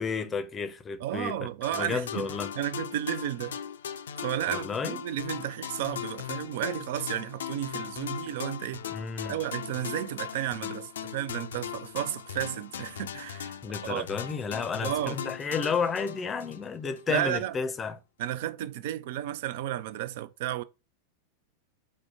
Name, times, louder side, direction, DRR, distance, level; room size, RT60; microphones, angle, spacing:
voice 1, 0.0-2.5 4.5-5.0 8.9-9.4 13.6-18.0, left 5 dB, 20° left, 0.6 m, -32 dB
voice 2, 1.0-2.3 2.6-3.6 4.2-8.9 9.2-14.0 14.8-15.2 17.1-17.6 18.2-20.6, right 12 dB, 50° right, 0.4 m, -33 dB
sound 1, 1.6-17.0, left 9 dB, 65° left, 0.4 m, -39 dB
4.8 x 2.1 x 4.6 m
figure-of-eight pair, 90°, 0 cm